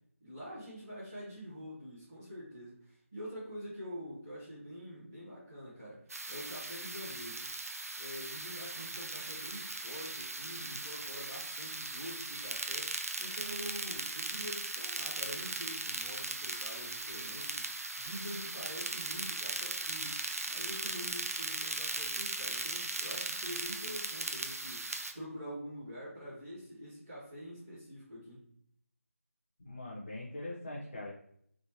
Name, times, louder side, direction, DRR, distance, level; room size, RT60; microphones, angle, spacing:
voice 1, 0.2-6.0 6.3-7.4 8.0-20.2 20.4-28.5, equal, 10° right, -13 dB, 0.5 m, -46 dB
sound 1, 6.1-25.1, right 2 dB, 75° right, 0.5 m, -38 dB
voice 2, 29.6-31.1, left 1 dB, 40° left, -6 dB, 0.7 m, -42 dB
3.6 x 2.8 x 2.7 m, 0.66 s
figure-of-eight pair, 175°, 8 cm